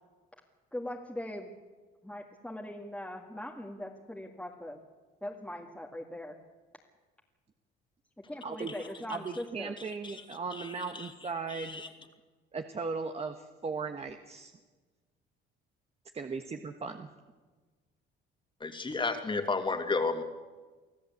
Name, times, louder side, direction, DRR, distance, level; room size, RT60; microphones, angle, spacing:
voice 1, 0.7-1.5 2.0-4.8 5.2-6.3 8.3-9.7, left 1 dB, 5° left, -1 dB, 2.0 m, -40 dB
voice 2, 8.4-8.7 9.1-11.8 12.5-14.5 16.1-17.1, right 4 dB, 30° right, 6 dB, 1.4 m, -37 dB
voice 3, 10.5-11.1 11.5-11.9 18.6-20.2, left 3 dB, 25° left, 7 dB, 2.7 m, -32 dB
25.0 x 14.5 x 8.4 m, 1.3 s
cardioid pair, 105°, 20 cm